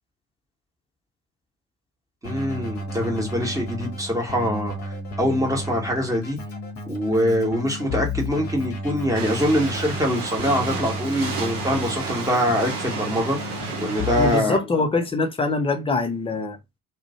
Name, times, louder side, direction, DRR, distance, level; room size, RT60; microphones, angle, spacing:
Keyboard (musical), 2.2-14.3, left 1 dB, 30° left, 0.8 m, -33 dB
voice 1, 2.2-6.4 6.9-14.6, equal, 10° right, 1.0 m, -24 dB
sound 1, 9.1-14.4, right 4 dB, 80° right, 0.8 m, -32 dB
voice 2, 14.2-16.6, left 3 dB, 15° left, 0.5 m, -23 dB
2.4 x 2.1 x 2.6 m
figure-of-eight pair, 60°, 44 cm